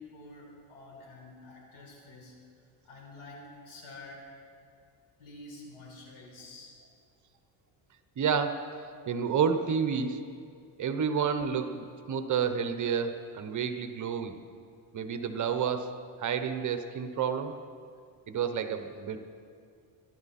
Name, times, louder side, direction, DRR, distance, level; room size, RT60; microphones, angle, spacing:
voice 1, 0.0-2.3 2.8-4.3 5.2-6.7, left 2 dB, 80° left, -2 dB, 5.1 m, -48 dB
voice 2, 8.2-10.2 10.8-14.4 14.9-17.6 18.3-19.2, right 6 dB, 40° right, 8 dB, 1.0 m, -30 dB
23.0 x 12.5 x 4.3 m, 2.3 s
cardioid pair, 140°, 47 cm